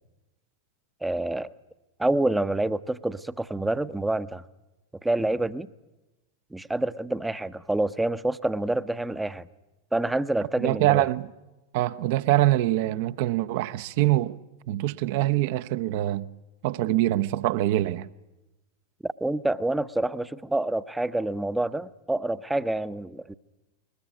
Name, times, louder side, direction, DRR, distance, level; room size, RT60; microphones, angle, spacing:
voice 1, 1.0-1.5 2.0-4.4 5.0-5.7 6.5-9.5 9.9-11.0 19.0-23.3, right 2 dB, 5° right, 0.8 m, -27 dB
voice 2, 10.6-11.3 11.7-14.4 14.7-16.3 16.6-18.1, right 15 dB, 50° right, 0.8 m, -24 dB
21.5 x 21.0 x 9.2 m
figure-of-eight pair, 90°, 0 cm